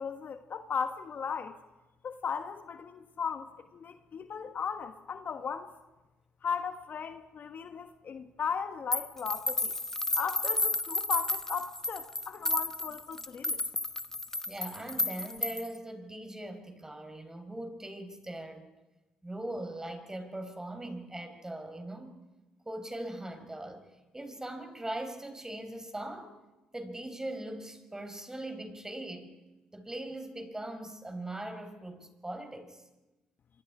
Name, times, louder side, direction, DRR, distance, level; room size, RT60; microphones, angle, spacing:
voice 1, 0.0-1.6 2.0-5.7 6.4-9.7 10.2-13.7, left 6 dB, 50° left, 9 dB, 1.3 m, -36 dB
sound 1, 8.9-15.8, left 2 dB, 10° left, 1.0 m, -32 dB
voice 2, 14.5-18.6 19.2-22.2 22.6-23.8 24.1-26.3 26.7-29.3 29.7-32.8, right 1 dB, 15° right, 7 dB, 4.6 m, -40 dB
25.5 x 24.5 x 4.9 m, 1.1 s
hypercardioid pair, 55°, 4 cm